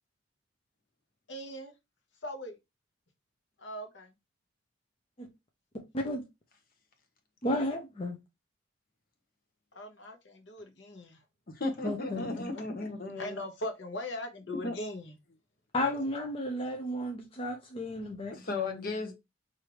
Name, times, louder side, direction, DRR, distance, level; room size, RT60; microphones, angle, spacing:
voice 1, 1.3-1.7 2.2-2.6 3.6-4.1 9.7-11.2 13.2-15.1, left 1 dB, 70° left, 1.1 m, -40 dB
voice 2, 7.4-8.2 11.8-12.4 15.7-18.9, left 1 dB, 30° left, 0.6 m, -33 dB
voice 3, 11.6-13.4 14.6-14.7 18.3-19.1, left 3 dB, 50° left, 0.9 m, -35 dB
4.8 x 2.7 x 3.0 m
head